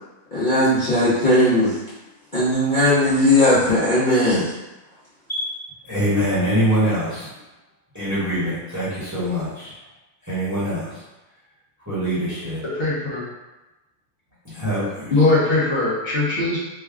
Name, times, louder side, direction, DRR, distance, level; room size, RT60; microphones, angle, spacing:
voice 1, 0.3-1.8 2.3-4.5 5.3-5.5, left 1 dB, 40° left, -12 dB, 0.9 m, -18 dB
voice 2, 5.8-7.3 7.9-9.8 10.2-11.0 11.9-12.6 14.4-15.1, equal, 15° right, -10 dB, 1.1 m, -24 dB
voice 3, 12.6-13.2 15.1-16.6, left 2 dB, 55° left, -8 dB, 1.2 m, -20 dB
3.3 x 2.2 x 3.5 m, 1.0 s
omnidirectional pair, 1.4 m